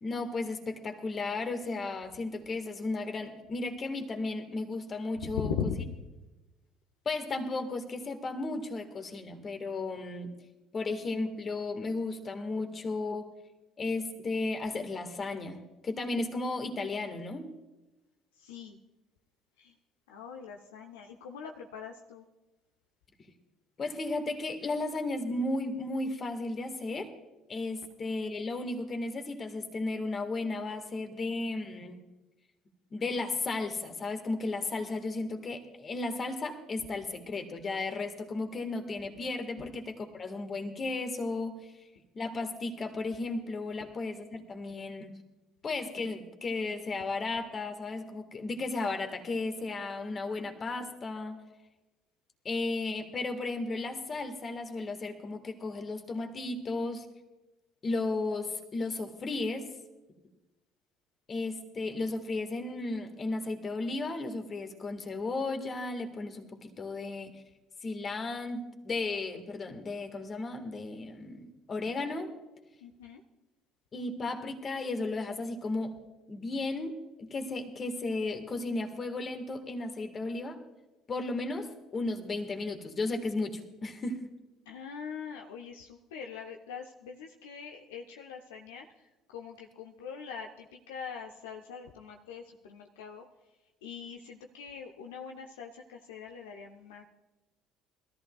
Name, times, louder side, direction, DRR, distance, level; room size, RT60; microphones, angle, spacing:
voice 1, 0.0-5.5 7.0-10.3 10.7-13.3 13.8-17.5 23.8-27.1 27.5-32.0 32.9-41.7 42.1-45.1 45.6-51.4 52.4-57.0 57.8-59.7 61.3-67.4 67.8-72.3 73.9-76.0 76.3-80.6 81.1-84.3, left 3 dB, 35° left, 6 dB, 1.7 m, -34 dB
voice 2, 5.2-6.0 18.3-18.8 19.6-19.8 20.1-22.3 39.6-39.7 72.8-73.2 84.7-93.2 93.8-97.0, left 6 dB, 75° left, 1 dB, 0.7 m, -41 dB
21.5 x 14.0 x 2.4 m, 1.1 s
figure-of-eight pair, 55°, 0 cm